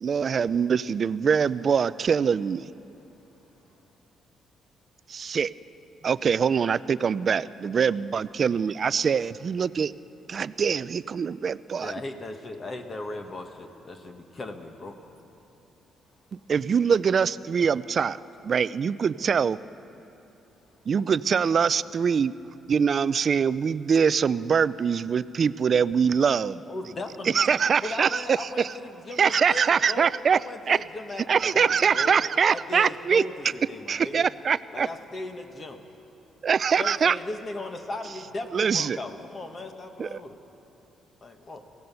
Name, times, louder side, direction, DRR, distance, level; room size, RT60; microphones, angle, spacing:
voice 1, 0.0-2.7 5.1-5.5 6.0-9.9 10.3-11.9 16.5-18.2 18.4-19.6 20.9-22.3 22.7-26.6 27.3-28.7 29.2-30.4 30.7-30.8 31.3-33.2 33.9-34.9 36.4-37.2 38.5-39.0 40.0-40.2, right 6 dB, 40° right, 0.4 m, -23 dB
voice 2, 2.8-4.0 16.1-16.5 20.5-20.9 41.4-41.5, left 3 dB, 70° left, 3.0 m, -70 dB
voice 3, 11.8-15.0 26.7-27.4 27.8-34.3 34.7-35.8 36.8-40.4 41.2-41.6, left 2 dB, 35° left, 1.3 m, -37 dB
23.0 x 16.5 x 6.9 m
cardioid pair, 130°, 0 cm